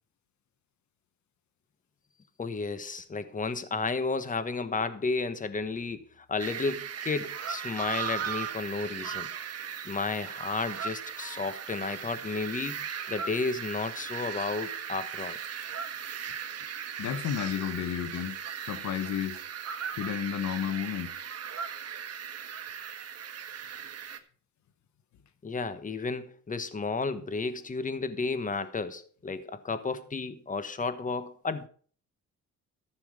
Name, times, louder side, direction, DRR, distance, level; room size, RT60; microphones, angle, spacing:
voice 1, 2.4-9.3 9.8-15.4 25.4-31.7, left 4 dB, 25° left, 1.3 m, -32 dB
sound 1, 6.4-24.2, right 8 dB, 55° right, 1.6 m, -38 dB
voice 2, 17.0-19.4 19.9-21.2, left 9 dB, 70° left, 1.1 m, -32 dB
14.0 x 7.1 x 5.2 m
cardioid pair, 90°, 30 cm